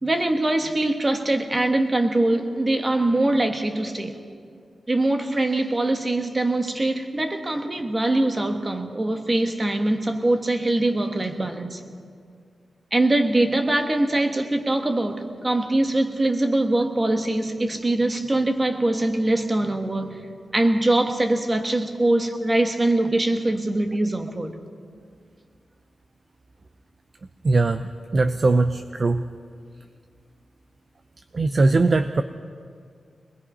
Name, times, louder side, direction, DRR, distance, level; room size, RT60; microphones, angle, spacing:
voice 1, 0.0-4.2 4.9-11.8 12.9-20.2 20.5-24.5, right 2 dB, 20° right, 6 dB, 1.3 m, -23 dB
voice 2, 27.4-29.2 31.3-32.2, right 3 dB, 35° right, 10 dB, 0.5 m, -20 dB
25.0 x 20.0 x 5.5 m, 2.2 s
wide cardioid pair, 180°, 0 cm